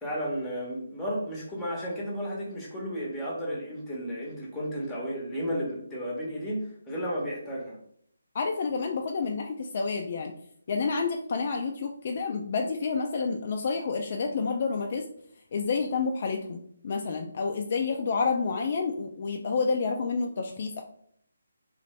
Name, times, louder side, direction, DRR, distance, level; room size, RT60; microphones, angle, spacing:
voice 1, 0.0-7.8, equal, 5° left, -3 dB, 1.0 m, -33 dB
voice 2, 8.3-10.4 10.7-15.1 15.5-20.8, left 4 dB, 45° left, 3 dB, 0.3 m, -29 dB
3.1 x 2.5 x 3.2 m, 0.65 s
figure-of-eight pair, 150°, 0 cm